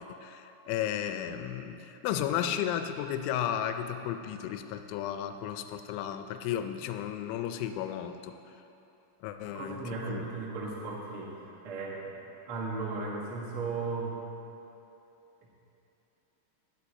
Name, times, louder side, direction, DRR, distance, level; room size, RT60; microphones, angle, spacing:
voice 1, 0.1-8.4 9.2-10.3, left 10 dB, 85° left, 8 dB, 3.0 m, -34 dB
voice 2, 9.5-11.3 11.6-12.2 12.5-14.2, right 3 dB, 90° right, -4 dB, 1.2 m, -35 dB
11.0 x 10.5 x 4.2 m, 2.8 s
omnidirectional pair, 5.3 m